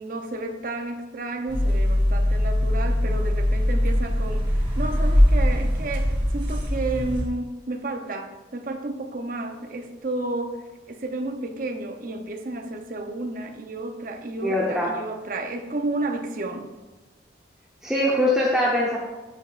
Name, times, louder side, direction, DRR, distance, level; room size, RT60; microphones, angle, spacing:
voice 1, 0.0-16.8, right 2 dB, 50° right, 6 dB, 0.7 m, -32 dB
sound 1, 1.5-7.2, left 1 dB, 25° right, 2.3 m, -21 dB
voice 2, 14.4-14.9 17.8-19.0, left 1 dB, 5° right, -5 dB, 0.8 m, -22 dB
9.0 x 7.0 x 2.5 m, 1.2 s
head